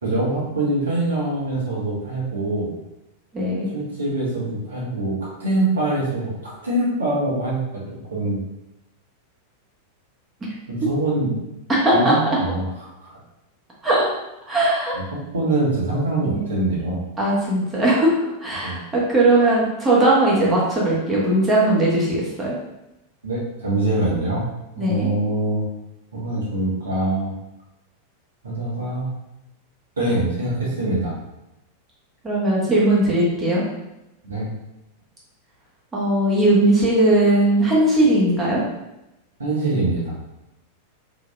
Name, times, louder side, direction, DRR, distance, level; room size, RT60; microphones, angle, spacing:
voice 1, 0.0-2.7 3.7-7.8 8.1-8.4 10.7-11.3 11.9-13.2 15.1-17.0 18.6-18.8 23.2-24.5 24.7-25.6 26.1-27.3 28.4-29.1 30.0-31.2 34.2-34.5 39.4-40.2, right 2 dB, 70° right, -5 dB, 1.1 m, -24 dB
voice 2, 3.3-3.7 11.7-12.1 13.8-14.0 14.5-14.9 16.3-16.5 17.2-18.2 18.4-22.5 24.8-25.1 32.2-33.6 35.9-38.6, right 1 dB, 20° right, -5 dB, 1.1 m, -18 dB
4.4 x 2.8 x 2.2 m, 0.93 s
figure-of-eight pair, 90°, 0 cm